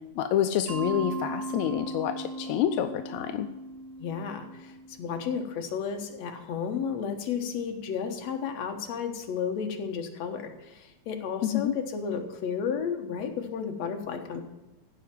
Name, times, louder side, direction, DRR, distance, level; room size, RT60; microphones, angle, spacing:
voice 1, 0.1-3.5 11.4-11.7, left 10 dB, 80° left, 7 dB, 1.7 m, -28 dB
Mallet percussion, 0.7-5.5, right 2 dB, 50° right, 3.3 m, -38 dB
voice 2, 4.0-14.4, left 6 dB, 60° left, 4 dB, 2.3 m, -33 dB
15.5 x 5.7 x 7.5 m, 1.0 s
omnidirectional pair, 3.7 m